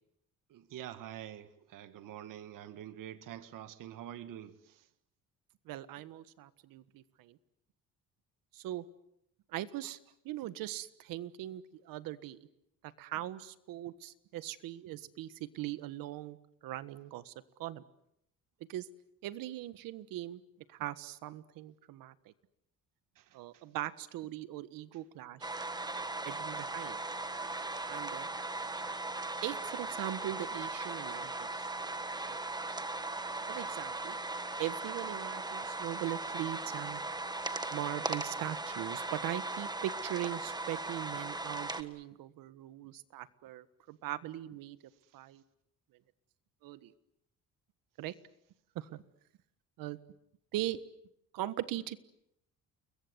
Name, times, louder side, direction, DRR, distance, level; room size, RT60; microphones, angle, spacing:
voice 1, 0.5-4.9 23.2-23.6, right 11 dB, 75° right, 1.7 m, -47 dB
voice 2, 5.6-7.4 8.5-8.8 9.5-10.0 10.2-12.4 12.8-16.4 16.6-17.3 17.6-17.8 18.7-18.9 19.2-20.4 20.7-22.3 23.3-25.5 26.2-27.0 27.8-28.3 29.4-31.7 32.2-32.4 33.5-34.2 34.6-37.0 37.7-44.8 45.1-45.4 46.6-46.9 48.0-48.1 48.7-49.0 49.8-50.0 50.5-50.8 51.3-52.0, right 14 dB, 90° right, 1.5 m, -40 dB
sound 1, 25.4-41.8, right 2 dB, 10° right, 1.6 m, -38 dB
29.5 x 22.5 x 8.0 m
cardioid pair, 120°, 33 cm